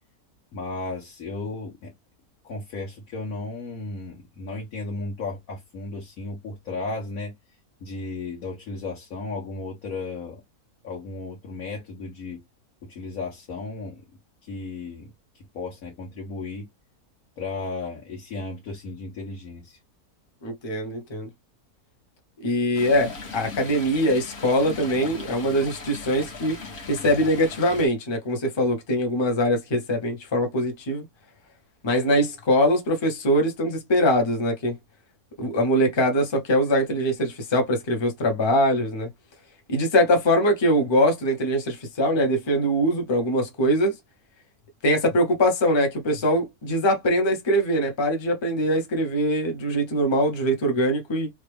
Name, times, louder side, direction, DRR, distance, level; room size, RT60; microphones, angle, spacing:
voice 1, 0.5-1.9 2.4-7.3 7.8-10.4 10.8-12.4 12.8-14.0 14.4-16.7 17.4-19.8, left 3 dB, 70° left, 1.5 m, -34 dB
voice 2, 20.4-21.3 22.4-26.6 26.9-31.0 31.8-34.7 35.4-39.1 39.7-43.9 44.8-51.3, equal, 25° left, 0.7 m, -22 dB
Stream, 22.7-27.9, left 4 dB, 50° left, 1.2 m, -38 dB
3.2 x 2.4 x 3.3 m
omnidirectional pair, 1.6 m